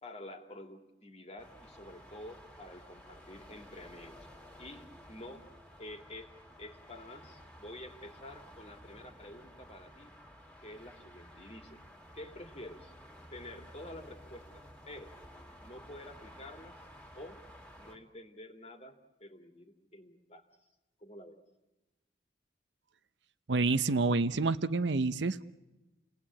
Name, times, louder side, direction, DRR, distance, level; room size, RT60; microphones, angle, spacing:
voice 1, 0.0-4.3 4.6-5.4 5.8-6.3 6.6-10.1 10.6-11.8 12.1-12.9 13.3-15.1 15.6-16.8 17.1-17.4 17.8-20.4 21.0-21.4, left 1 dB, 35° left, 5 dB, 2.4 m, -49 dB
sound 1, 1.4-18.0, equal, 5° left, 2.5 m, -54 dB
voice 2, 23.5-25.4, right 3 dB, 75° right, 13 dB, 0.8 m, -28 dB
29.5 x 18.5 x 8.7 m, 1.0 s
head